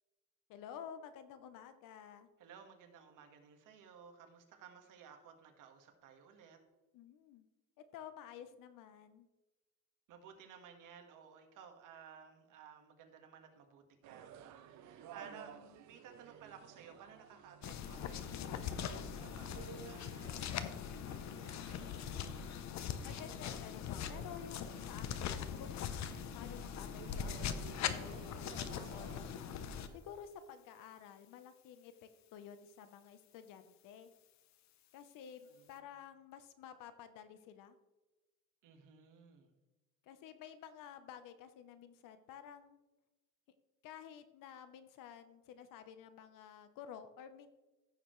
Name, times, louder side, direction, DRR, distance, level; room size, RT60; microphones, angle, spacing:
voice 1, 0.5-2.3 6.9-7.5 7.9-9.3 15.2-15.8 21.3-21.9 23.0-26.0 26.3-27.6 27.9-29.6 29.9-31.9 32.3-34.1 34.9-37.8 40.0-42.8 43.8-47.5, left 8 dB, 85° left, 11 dB, 1.0 m, -52 dB
voice 2, 2.4-6.6 10.1-20.4 35.5-35.8 38.6-39.5, right 7 dB, 75° right, 5 dB, 1.7 m, -57 dB
sound 1, 14.0-30.0, right 9 dB, 60° right, 0.7 m, -56 dB
sound 2, 17.6-29.9, left 8 dB, 60° left, 0.8 m, -41 dB
15.0 x 6.7 x 3.2 m, 1.1 s
cardioid pair, 145°, 32 cm